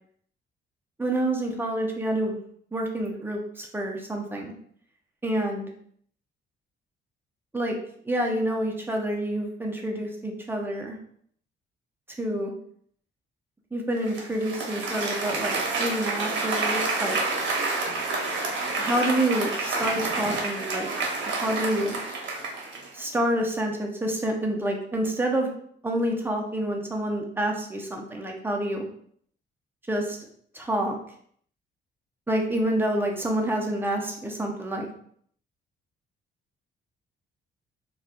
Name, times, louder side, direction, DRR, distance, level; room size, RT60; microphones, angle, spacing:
voice 1, 1.0-2.4 2.7-4.5 5.2-5.7 7.5-7.8 8.1-11.0 12.2-12.5 13.7-17.2 18.8-20.9 21.3-22.0 22.9-25.5 25.8-28.8 29.9-30.2 30.5-31.0 32.3-34.9, right 1 dB, 10° right, 1 dB, 0.7 m, -28 dB
Applause, 14.1-23.0, right 3 dB, 70° right, 0.9 m, -29 dB
4.1 x 2.3 x 2.3 m, 0.63 s
cardioid pair, 90°, 20 cm